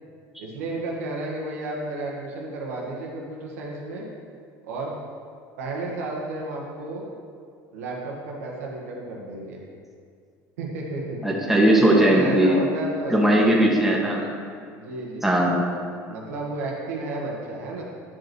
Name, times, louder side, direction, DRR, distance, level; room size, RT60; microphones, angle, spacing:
voice 1, 0.4-4.1 4.6-4.9 5.6-7.0 7.7-9.6 10.6-11.2 11.7-13.6 14.7-15.3 16.1-17.8, right 2 dB, 90° right, -2 dB, 1.7 m, -32 dB
voice 2, 11.2-12.6 13.1-14.3 15.2-15.7, right 1 dB, 5° right, -3 dB, 1.8 m, -19 dB
10.5 x 5.4 x 4.6 m, 2.2 s
supercardioid pair, 85°, 8 cm